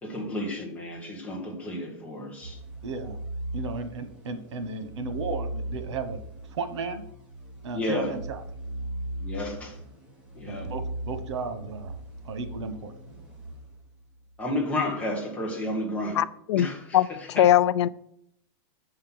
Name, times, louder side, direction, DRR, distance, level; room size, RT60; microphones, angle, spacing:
voice 1, 0.0-2.6 7.7-8.1 9.2-9.8 10.4-10.7 14.4-16.2 16.6-16.8 17.3-17.4, left 1 dB, 10° left, 1.6 m, -31 dB
sound 1, 2.4-14.3, right 1 dB, 10° right, 2.6 m, -38 dB
voice 2, 2.8-3.2 3.5-6.2 6.5-7.0 7.6-8.4 10.5-11.9 12.2-12.9, right 4 dB, 90° right, 1.3 m, -34 dB
voice 3, 16.2-16.7 16.9-17.9, left 11 dB, 75° left, 0.4 m, -21 dB
7.5 x 5.8 x 6.0 m
supercardioid pair, 160°, 15 cm